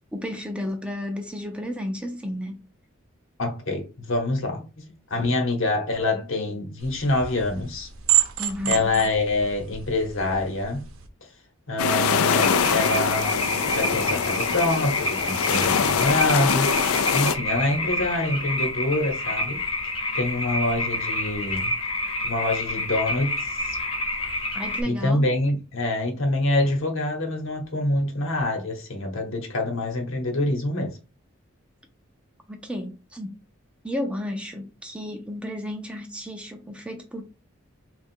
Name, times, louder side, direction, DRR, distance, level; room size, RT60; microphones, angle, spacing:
voice 1, 0.1-2.6 8.4-8.8 24.5-25.4 32.5-33.3 33.8-37.2, left 1 dB, 5° right, 0.4 m, -32 dB
voice 2, 3.4-4.8 5.1-7.9 8.6-10.8 11.7-16.8 17.1-19.6 20.1-21.7 22.2-23.8 24.8-31.0, left 2 dB, 65° left, 1.0 m, -26 dB
sound 1, 6.8-11.1, right 12 dB, 70° right, 0.7 m, -29 dB
sound 2, 11.8-17.4, left 6 dB, 80° left, 0.4 m, -23 dB
sound 3, 12.4-24.8, left 1 dB, 25° left, 0.8 m, -28 dB
3.5 x 2.4 x 4.3 m
head